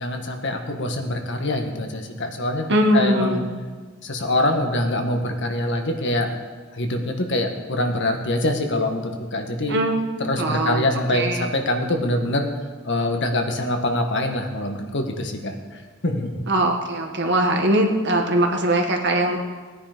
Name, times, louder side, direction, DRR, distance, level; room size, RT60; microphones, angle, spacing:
voice 1, 0.0-2.6 2.9-3.4 4.0-6.3 6.7-9.8 10.2-12.5 12.8-16.4, left 1 dB, 60° left, 4 dB, 1.6 m, -24 dB
voice 2, 2.7-3.5 9.7-10.0 10.4-10.8 11.1-11.4 16.5-19.4, right 1 dB, 55° right, 3 dB, 1.8 m, -21 dB
18.0 x 9.9 x 5.2 m, 1.4 s
head